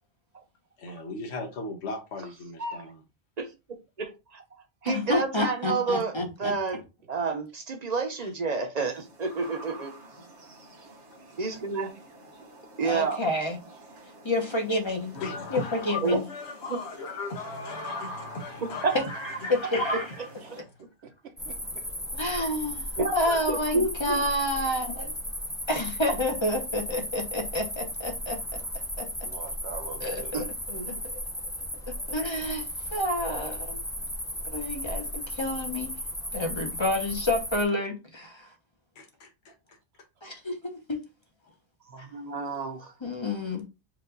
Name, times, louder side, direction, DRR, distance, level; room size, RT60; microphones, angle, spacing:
voice 1, 0.8-3.0 15.1-19.0 19.4-19.7 20.5-20.6 31.8-32.1 39.0-39.5, left 3 dB, 70° left, 1.1 m, -37 dB
voice 2, 2.6-2.9 3.4-3.5 4.0-4.4 4.8-6.1 6.4-6.8 7.1-9.9 11.4-11.9 12.8-13.2 16.0-16.2 16.7-16.8 18.8-19.0 23.0-24.3 30.3-31.0 41.9-42.9, right 4 dB, 40° right, 0.8 m, -29 dB
voice 3, 4.8-6.5 12.8-13.6 14.2-15.2 15.5-16.2 19.1-20.3 22.1-22.9 23.1-25.1 25.7-28.4 29.0-29.1 30.0-30.2 31.9-32.6 32.9-33.8 34.4-35.9 36.3-38.5 40.2-41.0 42.0-42.1 43.0-43.6, left 1 dB, 30° left, 0.8 m, -29 dB
voice 4, 6.2-6.8 20.4-20.6 21.2-21.8 29.2-30.4 36.8-36.9, right 6 dB, 70° right, 1.0 m, -44 dB
sound 1, 8.8-20.6, right 2 dB, 90° right, 1.5 m, -47 dB
sound 2, 21.4-37.6, equal, 5° left, 0.5 m, -35 dB
4.8 x 2.5 x 3.8 m
omnidirectional pair, 1.1 m